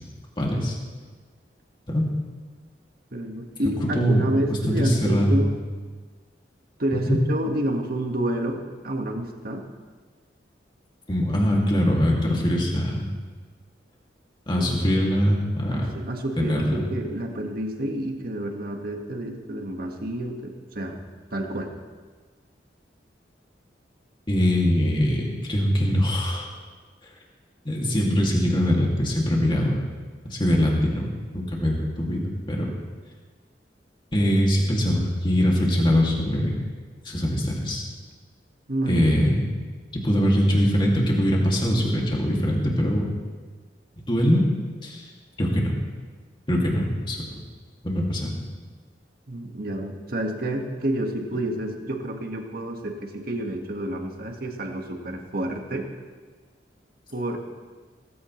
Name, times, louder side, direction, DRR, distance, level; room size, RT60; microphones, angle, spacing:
voice 1, 0.4-0.8 1.9-2.1 3.9-4.2 4.6-5.4 7.1-7.2 11.1-13.1 14.5-15.9 16.4-16.8 24.3-25.2 25.5-26.5 27.6-29.8 30.3-31.1 31.3-32.7 34.1-36.6 37.0-37.8 38.9-39.4 40.0-43.0 44.1-44.4 44.8-45.0 45.4-45.7 46.5-47.2 47.8-48.3, equal, 30° left, -2 dB, 2.5 m, -22 dB
voice 2, 3.1-5.6 6.8-9.7 14.6-14.8 15.7-21.0 21.3-21.7 38.7-39.1 49.3-55.9 57.1-57.4, right 1 dB, 55° right, 2 dB, 1.7 m, -29 dB
18.0 x 15.0 x 3.2 m, 1.4 s
head